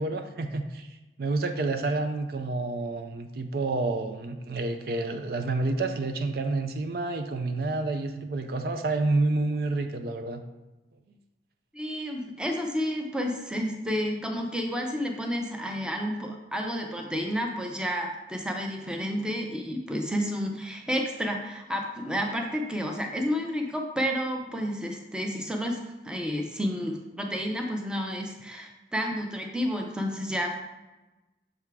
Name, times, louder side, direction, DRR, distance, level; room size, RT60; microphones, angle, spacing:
voice 1, 0.0-10.4, right 2 dB, 55° right, 7 dB, 0.4 m, -29 dB
voice 2, 11.7-30.6, equal, 5° right, 2 dB, 0.6 m, -31 dB
6.6 x 3.6 x 4.6 m, 1.1 s
head